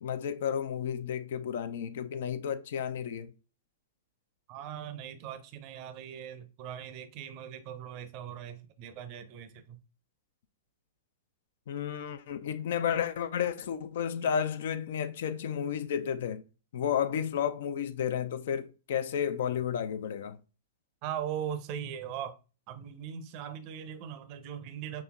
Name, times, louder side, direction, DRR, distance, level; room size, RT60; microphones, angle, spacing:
voice 1, 0.0-3.3 11.7-16.4 16.7-20.4, left 8 dB, 55° left, 0.5 m, -32 dB
voice 2, 4.5-9.8 21.0-22.4 22.7-25.0, right 9 dB, 40° right, 0.6 m, -40 dB
6.2 x 2.8 x 2.3 m
figure-of-eight pair, 105°, 0 cm